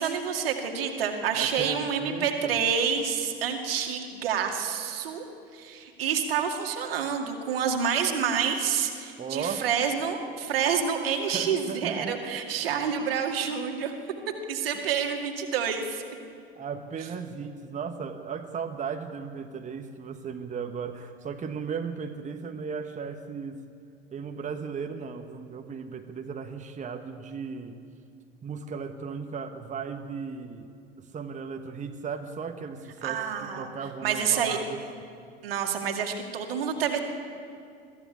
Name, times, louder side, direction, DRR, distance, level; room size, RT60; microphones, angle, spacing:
voice 1, 0.0-5.2 5.5-13.9 14.5-16.0 33.0-33.7 34.0-34.6 35.4-37.0, right 7 dB, 70° right, 3 dB, 2.1 m, -28 dB
voice 2, 1.3-2.5 9.2-9.7 11.3-12.4 16.5-23.6 24.1-27.8 28.4-30.7 31.0-34.8, right 6 dB, 25° right, 5 dB, 1.3 m, -36 dB
22.5 x 14.5 x 8.4 m, 2.4 s
figure-of-eight pair, 70°, 30 cm